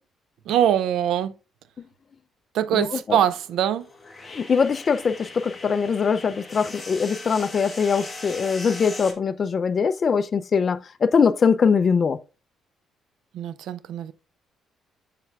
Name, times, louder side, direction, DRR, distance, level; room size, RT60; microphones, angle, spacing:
voice 1, 0.5-1.3 2.5-3.9 13.3-14.1, right 10 dB, 75° right, 0.4 m, -23 dB
sound 1, 3.4-9.1, left 2 dB, 10° left, 1.3 m, -39 dB
voice 2, 4.3-12.2, left 6 dB, 35° left, 0.4 m, -22 dB
7.3 x 6.7 x 2.3 m
cardioid pair, 140°, 0 cm